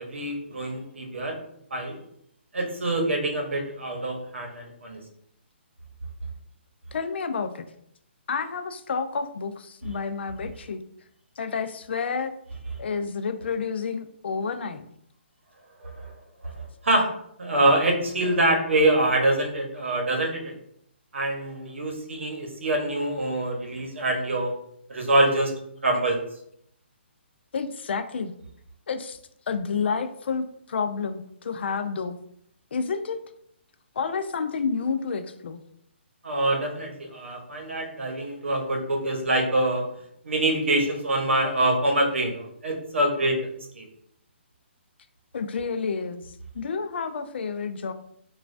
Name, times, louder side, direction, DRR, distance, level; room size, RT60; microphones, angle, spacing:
voice 1, 0.0-1.4 1.7-2.0 2.5-5.0 15.8-16.1 16.4-17.1 17.4-20.5 21.1-24.5 24.9-26.2 36.2-39.9 40.2-43.4 43.7-43.9, right 1 dB, 80° right, 2 dB, 0.9 m, -25 dB
voice 2, 6.9-7.6 8.3-10.8 11.4-12.3 12.8-14.8 27.5-28.3 28.9-29.2 29.5-32.2 32.7-33.2 34.0-35.6 45.3-46.2 46.5-47.9, left 5 dB, 65° left, 9 dB, 0.3 m, -29 dB
3.1 x 2.3 x 2.5 m, 0.70 s
hypercardioid pair, 150°, 6 cm